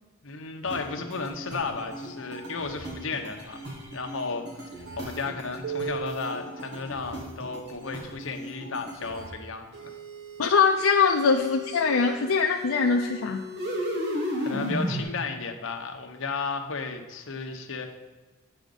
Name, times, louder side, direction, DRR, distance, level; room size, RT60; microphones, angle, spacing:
voice 1, 0.2-3.7 3.9-4.7 5.0-9.9 14.4-17.9, left 4 dB, 70° left, 4 dB, 0.9 m, -34 dB
sound 1, 0.6-9.3 9.7-15.0, equal, 55° right, 1.6 m, -36 dB
voice 2, 10.4-13.4, left 5 dB, 85° left, 3 dB, 0.5 m, -22 dB
8.9 x 5.0 x 5.3 m, 1.3 s
head